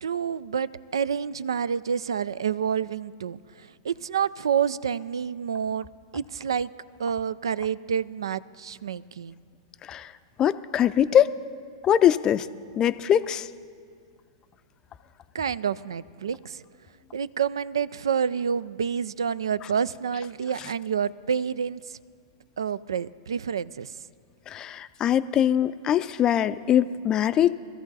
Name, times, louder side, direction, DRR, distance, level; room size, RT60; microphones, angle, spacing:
voice 1, 0.0-5.9 6.1-6.7 7.0-9.4 15.3-16.6 17.1-22.0 22.6-23.9, right 7 dB, 85° right, 18 dB, 0.3 m, -28 dB
voice 2, 9.8-10.1 10.4-11.3 11.8-12.5 12.8-13.5 24.5-27.6, left 10 dB, 30° left, 13 dB, 0.4 m, -22 dB
18.5 x 13.5 x 4.1 m, 2.1 s
hypercardioid pair, 115°, 2 cm